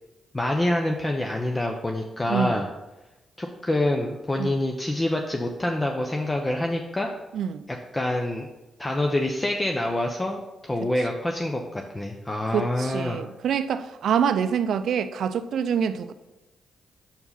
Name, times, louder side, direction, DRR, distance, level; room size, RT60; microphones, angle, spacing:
voice 1, 0.3-2.7 3.4-7.1 7.9-8.5 8.8-13.2, left 1 dB, 25° left, 0.7 m, -26 dB
voice 2, 2.3-2.6 4.4-4.5 7.3-7.6 12.5-16.1, right 7 dB, 75° right, 0.4 m, -26 dB
5.5 x 4.6 x 5.7 m
supercardioid pair, 50°, 0 cm